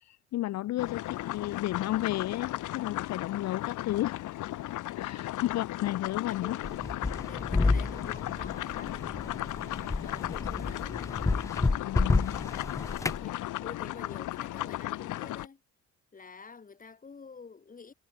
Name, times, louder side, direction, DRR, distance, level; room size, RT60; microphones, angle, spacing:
voice 1, 0.0-4.2 4.9-6.6 11.8-12.4, left 15 dB, 65° left, 0.5 m, -33 dB
sound 1, 0.8-15.5, left 15 dB, 80° left, 1.0 m, -36 dB
voice 2, 6.3-11.0 13.2-15.6 16.1-17.9, left 5 dB, 25° left, 1.6 m, -49 dB
sound 2, 6.6-13.2, left 3 dB, 10° left, 0.4 m, -30 dB
cardioid pair, 90°, 30 cm